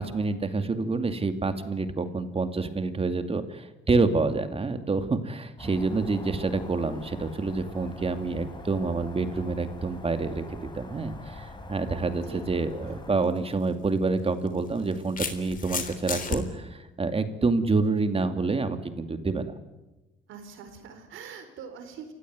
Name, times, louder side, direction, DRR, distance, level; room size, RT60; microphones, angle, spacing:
voice 1, 0.0-19.5, right 3 dB, 30° right, 9 dB, 2.3 m, -28 dB
sound 1, 5.6-13.1, left 2 dB, 25° left, 4.7 m, -43 dB
sound 2, 13.2-13.4 14.5-16.4, left 5 dB, 45° left, 3.6 m, -32 dB
voice 2, 20.3-22.1, right 6 dB, 85° right, 7 dB, 4.4 m, -43 dB
28.5 x 16.5 x 9.5 m, 1.0 s
cardioid pair, 90°, 20 cm